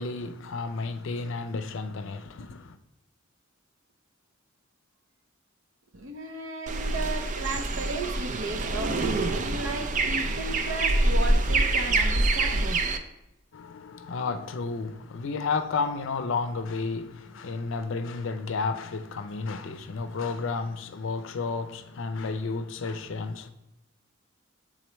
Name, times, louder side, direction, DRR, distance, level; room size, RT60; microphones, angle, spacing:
voice 1, 0.0-2.8 13.5-23.5, left 4 dB, 65° left, 9 dB, 0.5 m, -32 dB
voice 2, 5.9-12.8, right 2 dB, 70° right, 5 dB, 0.8 m, -34 dB
sound 1, 6.7-13.0, right 2 dB, 35° right, 0.4 m, -26 dB
7.9 x 3.8 x 3.1 m, 0.89 s
head